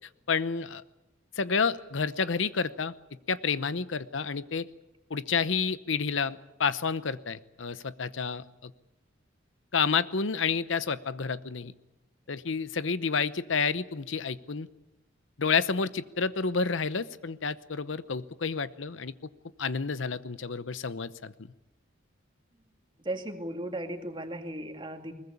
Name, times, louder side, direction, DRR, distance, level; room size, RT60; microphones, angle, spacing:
voice 1, 0.3-0.8 1.4-2.9 3.3-4.7 5.1-8.7 9.7-11.7 12.3-14.7 15.4-19.1 19.6-21.3, left 5 dB, 75° left, 15 dB, 0.8 m, -30 dB
voice 2, 23.0-25.1, right 1 dB, 25° right, 5 dB, 2.3 m, -36 dB
22.0 x 20.0 x 8.6 m, 0.95 s
head